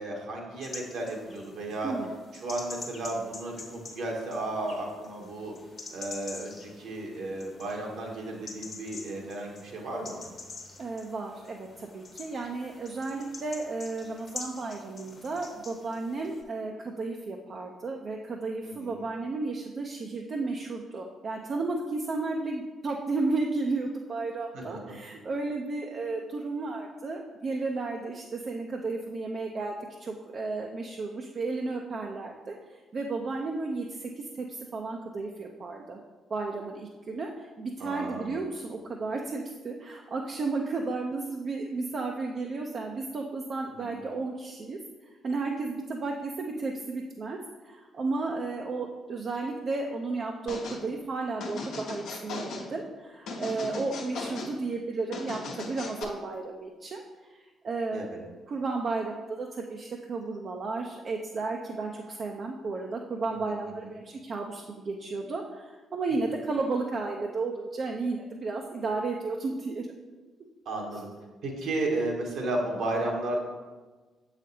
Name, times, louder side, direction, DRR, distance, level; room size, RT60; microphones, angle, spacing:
voice 1, 0.0-1.9 2.4-5.5 5.9-10.2 18.8-19.0 24.5-25.0 37.8-38.3 43.8-44.0 57.9-58.2 70.6-71.1 71.4-73.4, right 2 dB, 65° right, -1 dB, 1.3 m, -33 dB
sound 1, 0.6-16.4, left 3 dB, 50° left, 1.2 m, -46 dB
voice 2, 10.8-36.0 36.3-44.8 45.2-57.0 57.3-57.4 57.6-58.0 58.5-69.9 70.9-71.0, right 3 dB, 50° right, 1 dB, 0.5 m, -33 dB
sound 2, 50.5-50.8 51.4-52.7 53.3-54.5 55.1-56.0, left 3 dB, 70° left, 0.9 m, -37 dB
7.3 x 5.0 x 2.8 m, 1.3 s
hypercardioid pair, 45°, 0 cm